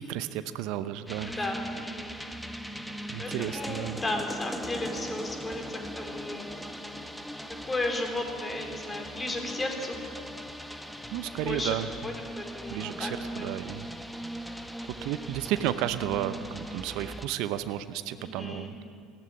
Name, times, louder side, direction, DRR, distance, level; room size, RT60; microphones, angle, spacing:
voice 1, 0.0-1.3 3.1-4.0 11.1-11.9 12.7-13.9 14.9-18.8, right 12 dB, 60° right, 13 dB, 0.7 m, -32 dB
sound 1, 1.1-17.3, equal, ahead, 1.6 m, -39 dB
voice 2, 1.3-2.2 3.2-6.7 7.6-10.1 10.6-10.7 11.3-11.7 12.0-13.5 18.2-18.7, left 2 dB, 20° left, 3 dB, 4.5 m, -34 dB
18.0 x 15.0 x 9.7 m, 2.3 s
hypercardioid pair, 65°, 0 cm